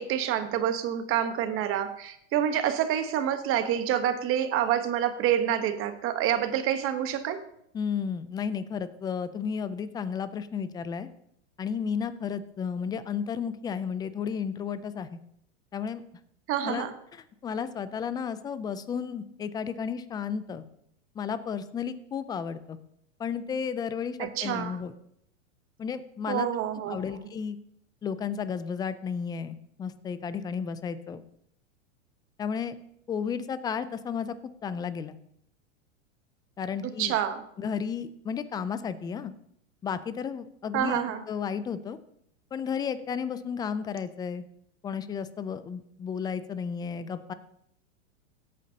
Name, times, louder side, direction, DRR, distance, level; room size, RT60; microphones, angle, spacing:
voice 1, 0.0-7.4 16.5-16.9 24.2-24.8 26.3-27.0 36.8-37.4 40.7-41.2, right 10 dB, 35° right, 9 dB, 1.1 m, -27 dB
voice 2, 7.7-11.1 11.6-15.2 15.7-16.0 16.6-16.9 17.4-20.6 21.2-22.8 23.2-24.9 25.8-26.5 26.9-27.6 28.0-31.2 32.4-32.8 33.1-34.4 34.6-35.2 36.6-37.1 37.6-39.3 39.8-42.0 42.5-44.4 44.8-47.3, left 6 dB, 10° left, 14 dB, 0.3 m, -33 dB
17.5 x 8.4 x 2.8 m, 0.73 s
hypercardioid pair, 125°, 37 cm